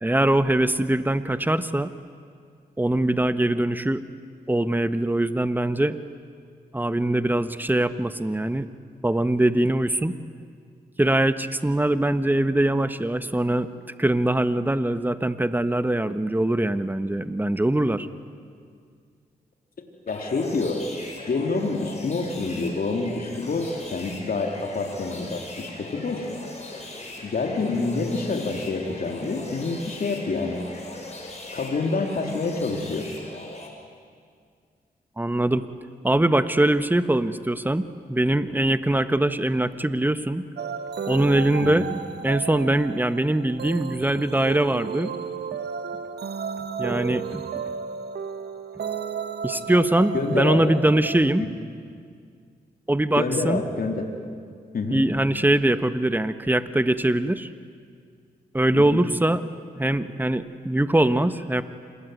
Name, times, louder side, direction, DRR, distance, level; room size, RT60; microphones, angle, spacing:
voice 1, 0.0-1.9 2.8-4.0 4.5-6.0 6.7-8.7 9.0-10.2 11.0-13.7 14.0-18.1 35.2-35.7 36.0-40.4 41.1-41.9 42.2-45.1 46.8-47.7 49.4-51.4 52.9-53.6 54.9-57.5 58.5-59.4 59.8-61.6, right 1 dB, 10° right, 12 dB, 1.4 m, -22 dB
voice 2, 20.1-20.8 21.3-26.3 27.2-30.6 31.5-33.1 41.6-41.8 50.1-50.8 53.2-54.1 54.7-55.0 58.7-59.0, left 3 dB, 60° left, 2 dB, 3.4 m, -27 dB
sound 1, 20.1-33.7, left 2 dB, 40° left, 6.8 m, -40 dB
sound 2, 40.6-51.3, right 6 dB, 80° right, 1.4 m, -33 dB
27.0 x 21.5 x 9.4 m, 2.1 s
cardioid pair, 50°, 17 cm